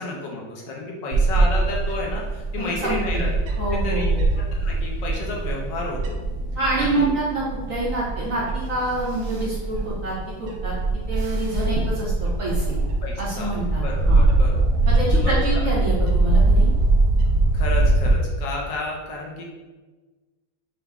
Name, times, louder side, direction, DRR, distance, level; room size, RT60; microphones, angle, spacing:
voice 1, 0.0-4.1 4.4-6.2 6.8-7.1 13.0-13.5 13.8-14.6 15.2-15.7 17.5-19.4, left 3 dB, 70° left, -1 dB, 1.2 m, -31 dB
Bird / Wind, 1.1-18.1, right 2 dB, 85° right, 0.8 m, -22 dB
voice 2, 2.6-3.2 3.6-4.2 6.5-10.7 11.1-12.8 13.2-14.3 14.9-16.7, right 1 dB, 60° right, -7 dB, 0.9 m, -27 dB
5.7 x 2.0 x 3.5 m, 1.3 s
omnidirectional pair, 2.2 m